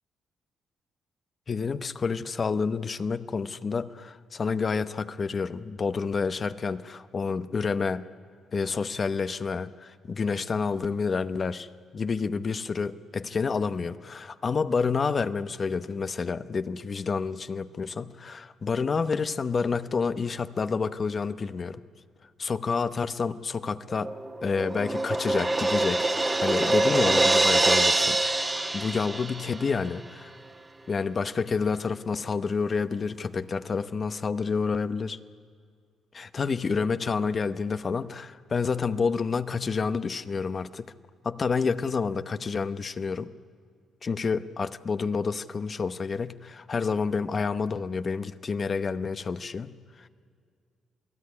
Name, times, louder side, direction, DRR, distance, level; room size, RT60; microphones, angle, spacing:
voice 1, 1.5-8.1 8.5-11.7 11.9-21.8 22.4-24.1 24.4-26.1 26.4-28.2 28.4-30.3 30.9-35.2 36.1-40.9 41.2-43.3 44.0-49.7, left 5 dB, 40° left, 13 dB, 0.9 m, -29 dB
Crash cymbal, 24.0-29.7, right 2 dB, 20° right, 1.6 m, -24 dB
27.5 x 18.0 x 9.7 m, 2.2 s
cardioid pair, 90°, 0 cm